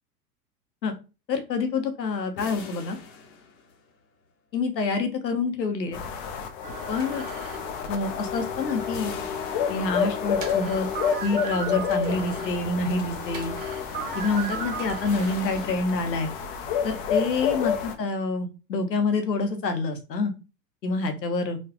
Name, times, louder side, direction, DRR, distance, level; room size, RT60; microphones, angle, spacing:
voice 1, 1.3-3.0 4.5-6.0 6.9-7.3 7.9-9.1 9.7-10.9 11.2-13.5 14.1-16.3 16.8-20.3 20.8-21.6, left 3 dB, 80° left, 6 dB, 0.9 m, -27 dB
sound 1, 2.4-4.2 8.9-10.6 15.0-16.7, left 5 dB, 55° left, 1.0 m, -44 dB
sound 2, 5.9-17.9, left 7 dB, 40° left, 0.6 m, -30 dB
sound 3, 6.6-15.7, right 5 dB, 20° right, 0.5 m, -38 dB
4.1 x 2.3 x 2.8 m, 0.31 s
figure-of-eight pair, 95°, 49 cm